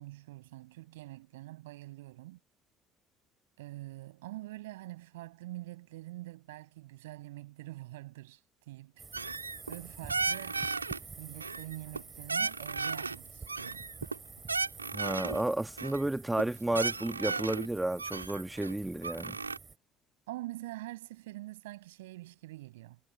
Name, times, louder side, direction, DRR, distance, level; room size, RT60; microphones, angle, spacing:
voice 1, 0.0-2.4 3.6-8.4 8.7-9.0 9.7-10.6 11.2-13.9 20.3-23.0, right 18 dB, 70° right, 5.8 m, -45 dB
sound 1, 9.0-19.8, right 5 dB, 25° right, 2.7 m, -49 dB
sound 2, 9.1-9.8 10.1-11.0 11.4-12.0 12.3-13.2 13.5-15.4 15.8-16.0 16.4-16.5 16.7-17.7 18.0-19.6, right 4 dB, 90° right, 2.6 m, -35 dB
voice 2, 14.9-19.3, right 1 dB, 10° right, 1.7 m, -32 dB
figure-of-eight pair, 55°, 0 cm